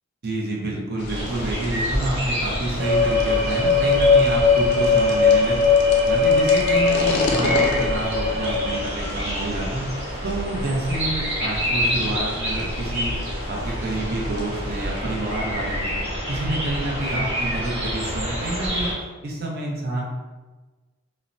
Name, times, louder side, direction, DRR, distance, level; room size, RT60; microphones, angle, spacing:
voice 1, 0.2-5.6 6.1-9.8 10.2-13.1 13.4-15.9 16.3-18.9 19.2-20.1, right 2 dB, 50° right, -2 dB, 0.6 m, -28 dB
sound 1, 1.0-15.0, left 1 dB, 55° left, 0.4 m, -35 dB
sound 2, 1.1-18.9, equal, 30° right, 0.9 m, -28 dB
sound 3, 2.8-8.8, left 4 dB, 85° right, 1.0 m, -19 dB
3.1 x 2.1 x 2.5 m, 1.2 s
head